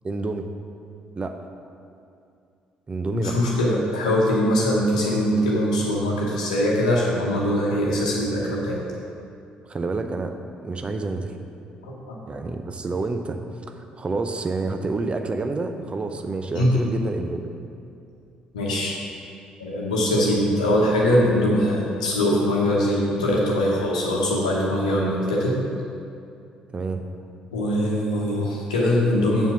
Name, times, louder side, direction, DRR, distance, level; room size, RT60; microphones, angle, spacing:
voice 1, 0.0-0.5 1.2-1.4 2.9-3.4 9.7-11.4 12.3-17.5 24.8-25.2 26.7-27.0, right 3 dB, 30° right, 7 dB, 0.7 m, -29 dB
voice 2, 3.1-8.9 11.8-12.2 16.5-16.8 18.5-19.0 19.6-25.6 27.5-29.5, left 1 dB, 80° left, -4 dB, 1.0 m, -22 dB
7.4 x 5.5 x 6.2 m, 2.5 s
figure-of-eight pair, 45°, 4 cm